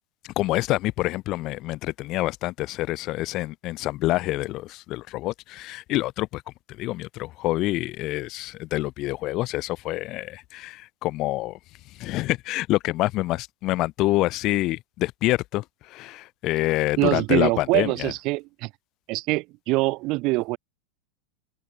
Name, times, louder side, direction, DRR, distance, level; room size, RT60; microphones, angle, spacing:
voice 1, 0.4-6.4 6.7-11.6 12.0-18.1, left 18 dB, 45° left, 6.7 m, -27 dB
voice 2, 17.0-18.7 19.1-20.6, right 23 dB, 50° right, 7.6 m, -24 dB
supercardioid pair, 130°, 0 cm